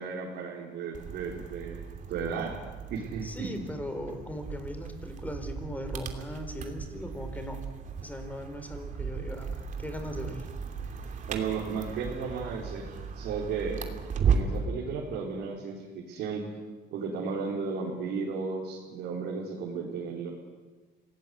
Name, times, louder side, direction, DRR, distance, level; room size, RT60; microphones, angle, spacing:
voice 1, 0.0-1.8 2.1-2.5 2.9-3.6 11.3-12.9 13.1-13.8 14.3-16.5 16.9-20.3, right 5 dB, 80° right, -3 dB, 4.3 m, -34 dB
sound 1, 0.9-14.7, right 6 dB, 50° right, 2.9 m, -35 dB
voice 2, 3.2-7.7 8.0-10.5, left 1 dB, 10° left, 7 dB, 4.0 m, -39 dB
27.0 x 18.5 x 8.4 m, 1.3 s
cardioid pair, 110°, 17 cm